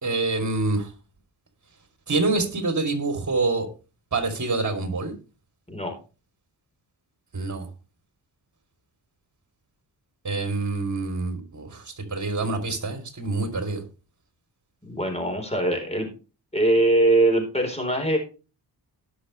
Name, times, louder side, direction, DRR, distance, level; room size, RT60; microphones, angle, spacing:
voice 1, 0.0-0.9 2.1-3.7 4.1-5.1 7.3-7.7 10.2-11.8 12.1-13.8, right 3 dB, 40° right, 7 dB, 3.3 m, -26 dB
voice 2, 14.8-16.1 16.5-18.2, right 2 dB, 15° left, 4 dB, 4.1 m, -22 dB
18.5 x 6.6 x 3.3 m, 0.32 s
cardioid pair, 70°, 43 cm